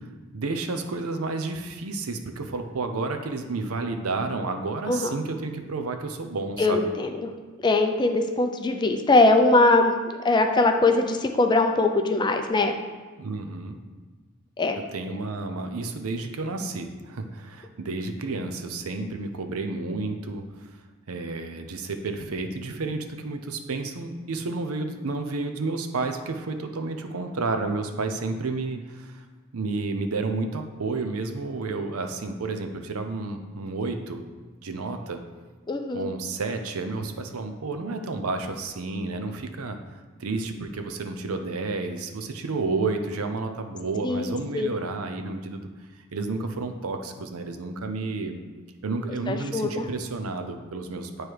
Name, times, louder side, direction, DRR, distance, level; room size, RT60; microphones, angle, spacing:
voice 1, 0.3-6.9 13.2-13.8 14.9-20.7 21.1-29.2 29.5-34.2 34.6-35.2 35.9-39.8 40.2-45.7 46.1-48.4 48.8-51.2, right 3 dB, 90° right, 6 dB, 0.6 m, -31 dB
voice 2, 6.6-7.3 7.6-9.9 10.2-12.7 14.6-14.8 35.7-36.1 44.0-44.7 49.3-49.9, left 2 dB, 20° left, 5 dB, 0.4 m, -21 dB
8.7 x 3.1 x 4.7 m, 1.4 s
head